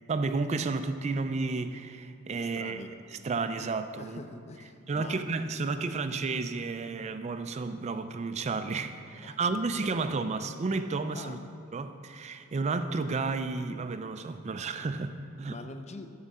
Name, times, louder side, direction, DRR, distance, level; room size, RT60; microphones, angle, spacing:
voice 1, 0.1-2.8 3.2-4.2 4.9-11.4 11.7-15.6, right 3 dB, 30° right, 10 dB, 0.3 m, -32 dB
voice 2, 2.5-3.0 4.0-5.3 9.2-10.1 11.1-11.4 15.5-16.1, left 3 dB, 30° left, 8 dB, 0.5 m, -44 dB
7.6 x 6.5 x 7.2 m, 2.4 s
head